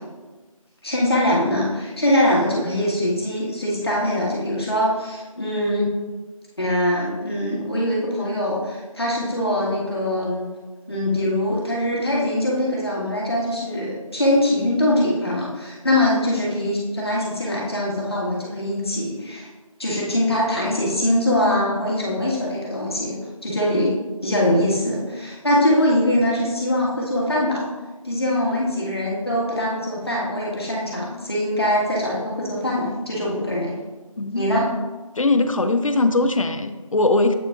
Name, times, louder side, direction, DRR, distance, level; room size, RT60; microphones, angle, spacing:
voice 1, 0.8-5.9 6.6-10.5 10.9-19.5 19.8-23.2 23.4-27.6 28.0-33.7 34.3-34.7, left 1 dB, 45° left, -5 dB, 1.5 m, -22 dB
voice 2, 34.2-34.5 35.2-37.3, left 2 dB, 65° left, 9 dB, 0.5 m, -20 dB
8.2 x 4.8 x 2.4 m, 1.3 s
figure-of-eight pair, 175°, 18 cm